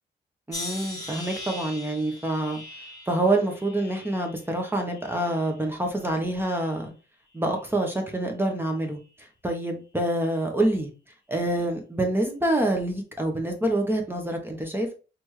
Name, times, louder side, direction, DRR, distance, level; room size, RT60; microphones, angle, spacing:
Clang single long swing, 0.5-5.7 6.1-6.8 7.5-7.8, left 2 dB, 20° left, 1.5 m, -41 dB
voice 1, 0.5-2.6 3.1-6.9 7.3-10.9 11.3-14.9, right 1 dB, 10° right, 2 dB, 0.9 m, -26 dB
4.2 x 3.2 x 3.1 m, 0.33 s
cardioid pair, 105°, 18 cm